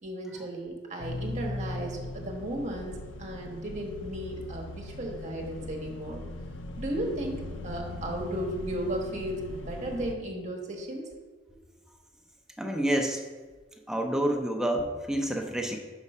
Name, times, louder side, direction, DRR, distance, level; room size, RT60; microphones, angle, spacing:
voice 1, 0.0-6.2 6.8-11.1, right 1 dB, 35° right, 0 dB, 1.1 m, -35 dB
sound 1, 1.0-10.1, left 2 dB, 70° left, 0.5 m, -39 dB
voice 2, 12.6-13.2 13.9-15.8, right 1 dB, 5° right, 2 dB, 0.5 m, -28 dB
5.3 x 4.9 x 5.4 m, 1.4 s
head